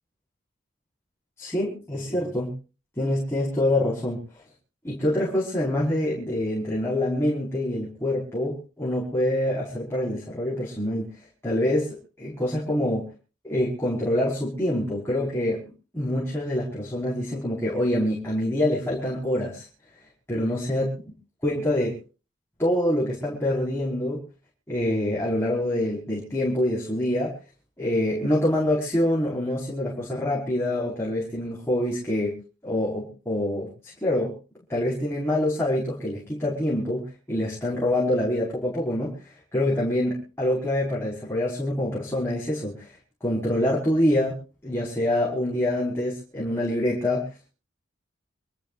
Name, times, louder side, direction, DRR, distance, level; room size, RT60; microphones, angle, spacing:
voice 1, 1.4-2.6 3.0-4.4 4.8-11.1 11.4-13.0 13.4-15.6 15.9-19.7 20.3-20.9 21.4-22.0 22.6-24.2 24.7-27.3 27.8-32.4 32.6-34.3 34.7-42.9 43.2-47.5, left 1 dB, 15° left, -5 dB, 5.4 m, -26 dB
27.5 x 13.5 x 2.6 m, 0.35 s
head